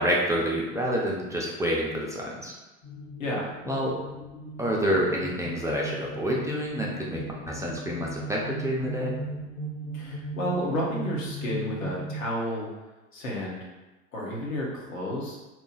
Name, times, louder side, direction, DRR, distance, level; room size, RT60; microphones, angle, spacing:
voice 1, 0.0-2.5 3.6-4.0 4.6-9.1, equal, 10° right, -4 dB, 0.5 m, -28 dB
sound 1, 2.8-12.3, right 2 dB, 15° left, 0.9 m, -37 dB
voice 2, 3.2-3.5 9.9-12.7 13.1-13.7 14.1-15.4, left 1 dB, 85° left, -3 dB, 1.1 m, -31 dB
3.0 x 2.3 x 3.9 m, 1.1 s
hypercardioid pair, 85°, 39 cm